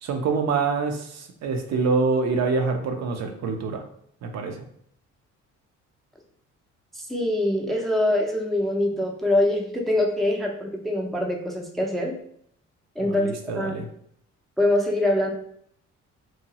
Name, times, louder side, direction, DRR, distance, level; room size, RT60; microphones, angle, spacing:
voice 1, 0.0-3.8 4.2-4.6 13.0-13.9, right 4 dB, 60° right, 4 dB, 0.5 m, -26 dB
voice 2, 7.1-12.1 13.0-13.3 13.6-13.8 14.6-15.3, left 1 dB, ahead, 0 dB, 0.4 m, -24 dB
2.8 x 2.2 x 2.8 m, 0.66 s
cardioid pair, 90°, 30 cm